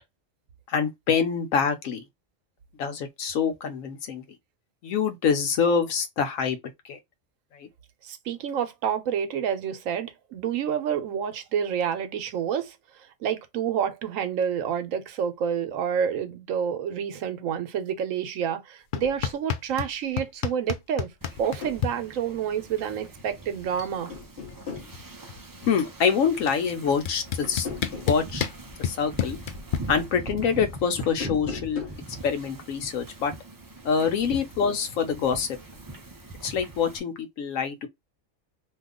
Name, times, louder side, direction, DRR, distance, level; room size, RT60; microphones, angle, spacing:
voice 1, 0.7-2.0 2.8-4.2 4.8-6.6 6.8-7.0 7.5-7.7 25.6-27.7 28.0-28.5 28.8-29.4 29.9-31.8 32.2-33.3 33.8-35.5 36.4-37.9, left 6 dB, 90° left, 1.1 m, -25 dB
voice 2, 8.0-12.8 13.2-21.1 21.4-24.1, right 8 dB, 85° right, 1.1 m, -28 dB
sound 1, 18.9-19.9 20.2-21.9 23.2-23.3 23.5-24.0 24.2-25.6 26.5-26.6 27.1-29.8, left 9 dB, 70° left, 0.5 m, -29 dB
Wind / Ocean, 21.2-37.0, right 2 dB, 35° right, 0.3 m, -42 dB
sound 2, 21.4-21.8 23.4-23.7 24.1-24.9 27.4-28.2 31.1-32.0, left 5 dB, 50° left, 1.0 m, -37 dB
2.8 x 2.3 x 3.5 m
omnidirectional pair, 1.3 m